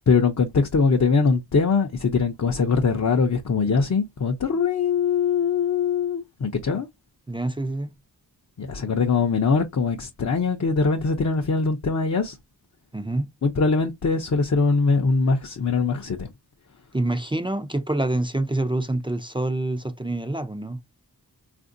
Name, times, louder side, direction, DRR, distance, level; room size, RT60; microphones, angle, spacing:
voice 1, 0.1-6.9 8.6-12.4 13.4-16.3, left 4 dB, 45° left, 0.6 m, -22 dB
voice 2, 7.3-7.9 12.9-13.3 16.9-20.8, right 2 dB, 15° right, 0.4 m, -26 dB
3.5 x 2.5 x 2.5 m
wide cardioid pair, 60°, 40 cm